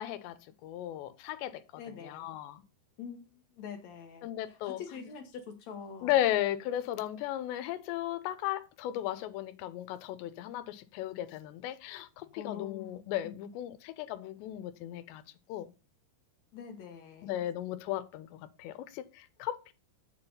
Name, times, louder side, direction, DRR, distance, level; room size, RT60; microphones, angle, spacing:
voice 1, 0.0-1.6 2.0-2.6 4.2-4.8 6.0-15.2 15.5-15.7 17.2-19.7, left 13 dB, 90° left, 3.0 m, -35 dB
voice 2, 1.8-2.3 3.0-6.1 12.2-13.3 16.5-17.4, left 6 dB, 70° left, 1.7 m, -45 dB
7.5 x 7.2 x 5.4 m
omnidirectional pair, 4.9 m